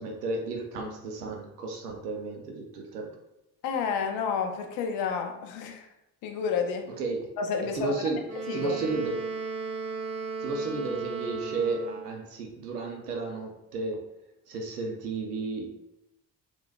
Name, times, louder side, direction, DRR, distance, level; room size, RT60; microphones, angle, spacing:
voice 1, 0.0-3.1 7.0-7.3 7.7-8.2 8.5-9.2 10.4-14.0 14.5-15.7, right 3 dB, 85° right, 1 dB, 0.5 m, -33 dB
voice 2, 3.6-5.8 6.2-6.9 7.4-8.0 8.5-8.7, left 6 dB, 55° left, 4 dB, 0.5 m, -30 dB
Wind instrument woodwind instrument, 8.3-12.2, right 4 dB, 35° right, 0.8 m, -35 dB
2.9 x 2.8 x 2.2 m, 0.87 s
figure-of-eight pair, 45°, 45 cm